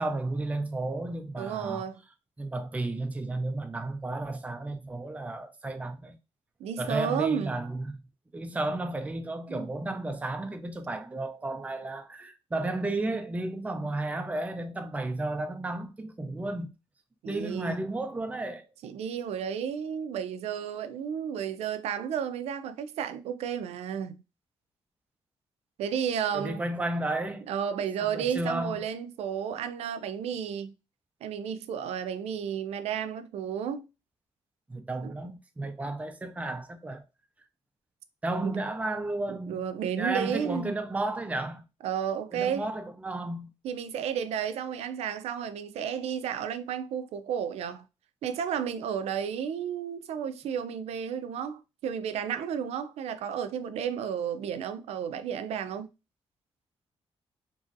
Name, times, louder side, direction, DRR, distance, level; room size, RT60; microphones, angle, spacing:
voice 1, 0.0-1.8 2.4-6.1 6.8-8.0 8.3-16.7 17.3-18.7 26.3-27.5 28.0-28.8 34.7-37.0 38.2-39.6 40.0-41.6 42.3-43.5, right 2 dB, 15° right, 0.4 m, -33 dB
voice 2, 1.4-2.0 6.6-7.6 9.5-9.7 17.2-17.8 18.8-24.2 25.8-26.6 27.5-30.7 31.2-33.8 35.0-35.1 38.4-38.6 39.3-40.8 41.8-42.7 43.6-47.8 48.2-55.9, right 8 dB, 85° right, 0.4 m, -32 dB
3.0 x 2.5 x 2.6 m
cardioid pair, 110°, 11 cm